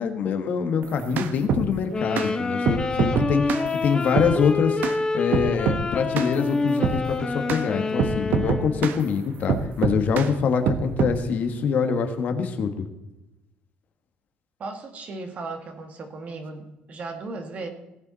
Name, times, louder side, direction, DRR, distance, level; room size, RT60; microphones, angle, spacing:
voice 1, 0.0-4.8 5.1-12.8, left 6 dB, 55° left, 7 dB, 1.4 m, -25 dB
sound 1, 0.8-1.7 2.2-2.3 2.7-3.7 4.2-4.3 4.8-5.0 5.3-5.8 6.2-6.3 6.8-7.0 7.5-7.6 8.0-9.0 9.5-10.3 10.7-11.2, right 6 dB, 60° right, 0.9 m, -24 dB
sound 2, 1.9-9.0, left 4 dB, 25° left, 1.2 m, -27 dB
voice 2, 14.6-17.7, right 3 dB, 40° right, 6 dB, 1.8 m, -36 dB
17.5 x 8.2 x 4.1 m, 0.96 s
cardioid pair, 140°, 3 cm